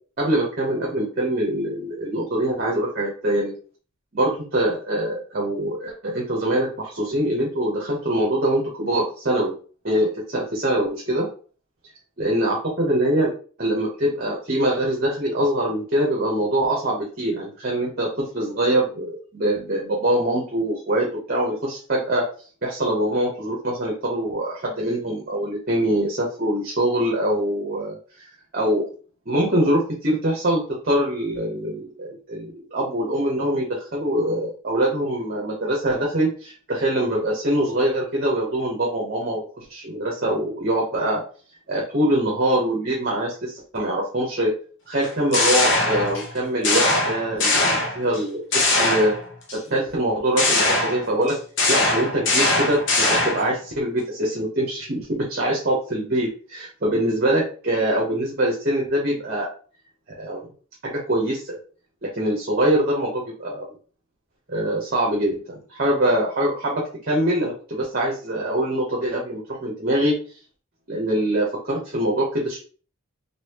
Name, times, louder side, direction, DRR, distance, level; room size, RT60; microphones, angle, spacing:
voice 1, 0.2-3.5 4.1-9.5 9.8-11.3 12.2-13.3 13.6-18.1 18.3-22.2 22.6-28.0 28.5-28.9 29.3-41.2 41.7-44.5 44.9-49.2 49.5-51.4 51.7-59.5 60.2-60.5 60.8-61.6 62.0-63.6 64.5-70.2 70.9-72.6, right 1 dB, 45° right, -2 dB, 1.0 m, -23 dB
sound 1, 45.0-46.3 46.6-48.2 48.5-49.6 50.4-53.5, left 2 dB, 55° left, 0.9 m, -21 dB
4.0 x 2.7 x 2.9 m, 0.40 s
head